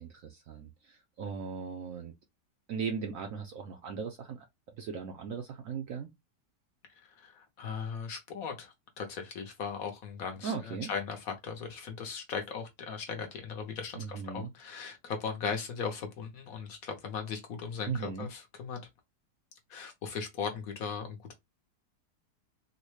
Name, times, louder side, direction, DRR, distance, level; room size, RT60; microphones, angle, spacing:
voice 1, 0.0-2.1 2.7-4.5 4.8-6.1 10.4-10.9 13.9-14.5 17.9-18.3, right 6 dB, 70° right, 0.8 m, -38 dB
voice 2, 7.2-18.9 19.7-21.3, left 6 dB, 60° left, 1.1 m, -38 dB
3.9 x 2.1 x 3.1 m
omnidirectional pair, 1.8 m